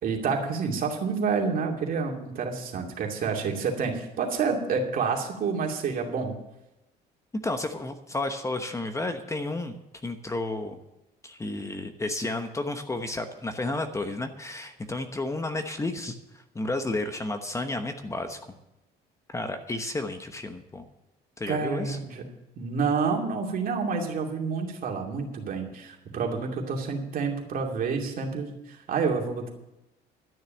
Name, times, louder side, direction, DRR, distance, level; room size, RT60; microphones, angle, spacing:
voice 1, 0.0-6.3 21.5-22.2 22.6-29.5, right 5 dB, 55° right, 1 dB, 2.6 m, -28 dB
voice 2, 7.4-9.7 10.0-10.8 11.2-18.4 19.3-20.8 21.4-22.0, left 2 dB, 15° left, 7 dB, 1.0 m, -32 dB
12.0 x 6.7 x 8.9 m, 0.93 s
cardioid pair, 110°, 17 cm